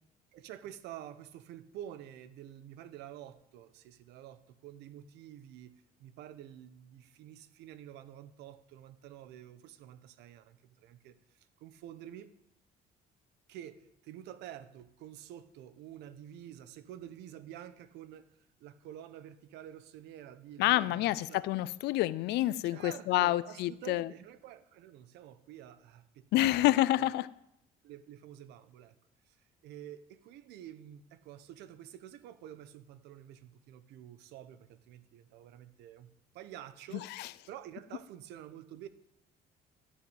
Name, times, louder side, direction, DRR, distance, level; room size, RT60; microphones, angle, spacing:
voice 1, 0.3-12.3 13.5-18.3 18.6-21.4 22.6-27.1 27.8-29.0 29.3-29.4 29.6-38.9, right 11 dB, 85° right, 1.1 m, -49 dB
voice 2, 20.6-24.1 26.3-27.3 37.1-37.3, left 16 dB, 80° left, 0.6 m, -28 dB
11.5 x 10.5 x 8.1 m
cardioid pair, 110°, 17 cm